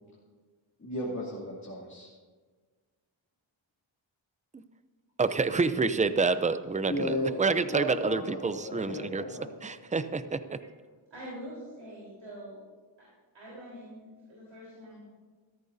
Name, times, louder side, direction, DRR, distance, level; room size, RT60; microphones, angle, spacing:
voice 1, 0.8-2.1 6.9-9.6, left 1 dB, 35° left, -7 dB, 2.6 m, -35 dB
voice 2, 5.2-9.2 9.6-10.6, right 4 dB, 15° right, 12 dB, 0.5 m, -28 dB
voice 3, 11.1-12.6 13.3-15.0, equal, 70° right, -6 dB, 4.0 m, -44 dB
15.0 x 13.5 x 2.7 m, 1.5 s
wide cardioid pair, 85°, 48 cm